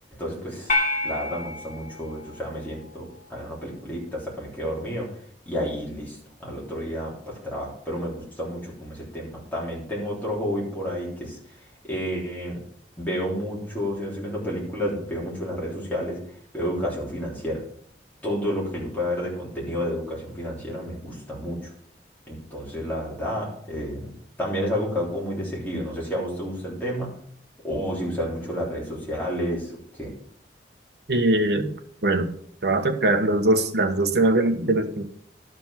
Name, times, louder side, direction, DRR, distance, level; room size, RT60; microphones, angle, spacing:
voice 1, 0.2-0.7 1.0-5.1 5.4-11.4 11.8-12.6 13.0-16.2 16.5-17.6 18.2-21.7 22.3-24.1 24.4-27.1 27.6-30.1, equal, 10° left, -5 dB, 3.4 m, -30 dB
sound 1, 0.7-3.2, left 2 dB, 45° left, 1.3 m, -29 dB
voice 2, 31.1-31.7 32.0-32.3 32.6-35.0, right 2 dB, 65° right, 6 dB, 1.1 m, -21 dB
12.0 x 5.2 x 5.8 m, 0.63 s
head